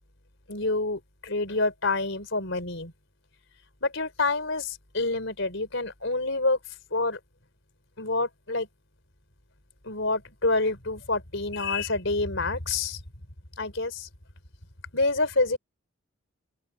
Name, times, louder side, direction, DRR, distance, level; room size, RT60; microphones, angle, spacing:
voice 1, 0.5-2.9 3.8-6.6 6.9-7.2 8.0-8.7 9.8-13.0 13.6-14.1 14.9-15.6, left 3 dB, 60° left, 4.7 m, -27 dB
open air
head